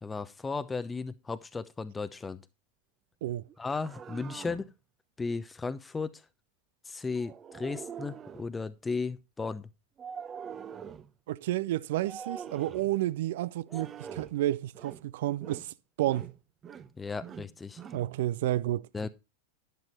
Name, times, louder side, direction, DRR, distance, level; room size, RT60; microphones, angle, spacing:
voice 1, 0.0-2.4 3.6-4.7 5.2-6.2 6.9-9.7 17.0-17.8 18.9-19.1, left 4 dB, 10° left, 0.8 m, -35 dB
sound 1, 3.5-4.7 7.2-8.5 10.0-11.1 12.0-12.9 13.7-14.4 14.7-15.1 15.4-15.7 16.0-16.9 17.2-18.1, right 7 dB, 25° right, 0.9 m, -44 dB
voice 2, 11.3-16.3 17.9-18.9, right 14 dB, 55° right, 0.6 m, -31 dB
11.5 x 11.0 x 3.2 m
figure-of-eight pair, 90°, 0 cm